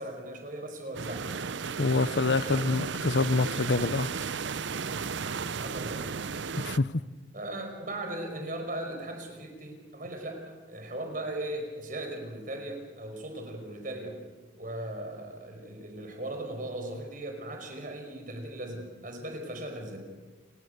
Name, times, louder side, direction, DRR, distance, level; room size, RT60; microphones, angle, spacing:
voice 1, 0.0-1.6 2.4-2.8 5.5-6.2 7.3-14.2 14.5-20.0, right 1 dB, 45° right, 4 dB, 5.3 m, -38 dB
sound 1, 0.9-6.8, right 5 dB, 70° right, 0.7 m, -34 dB
voice 2, 1.8-4.1 6.6-7.0, left 3 dB, 60° left, 16 dB, 0.7 m, -26 dB
29.5 x 18.0 x 6.7 m, 1.3 s
head